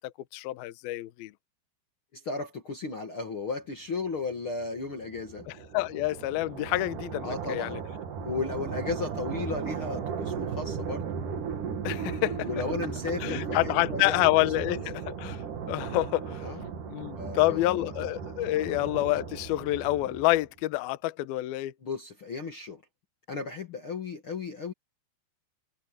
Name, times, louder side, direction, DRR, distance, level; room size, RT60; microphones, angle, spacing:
voice 1, 0.0-1.3 5.7-7.8 11.8-12.5 13.2-15.4 15.7-16.5 16.9-21.7, left 17 dB, 75° left, 2.2 m, -28 dB
voice 2, 2.1-5.4 7.2-7.8 8.2-11.1 12.4-14.8 16.4-16.7 17.2-17.9 21.8-22.8 23.3-24.7, left 4 dB, 50° left, 1.5 m, -35 dB
sound 1, 4.3-20.6, right 6 dB, 50° right, 3.0 m, -36 dB
omnidirectional pair, 5.5 m